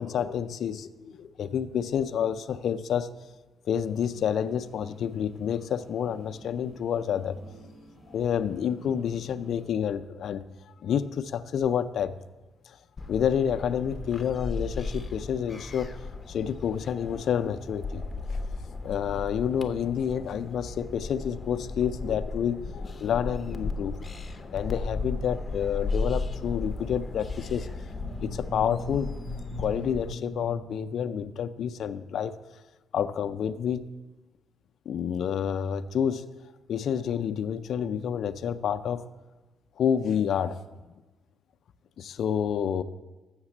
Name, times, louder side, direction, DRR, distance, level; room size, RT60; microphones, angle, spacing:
voice 1, 0.0-3.1 3.7-7.6 8.1-10.4 10.8-12.2 12.7-12.8 13.1-16.0 16.2-18.0 18.8-24.1 24.4-27.7 28.2-29.1 29.6-32.3 32.9-33.9 34.9-36.3 36.7-39.0 39.8-40.6 42.0-42.8, left 8 dB, 65° left, 9 dB, 0.4 m, -29 dB
sound 1, 3.7-9.8, equal, 10° right, 3.5 m, -51 dB
sound 2, 13.0-30.1, left 3 dB, 30° left, 0.7 m, -36 dB
sound 3, 27.8-31.9, left 1 dB, 40° right, 1.3 m, -40 dB
7.2 x 6.6 x 7.2 m, 1.2 s
cardioid pair, 90°, 0 cm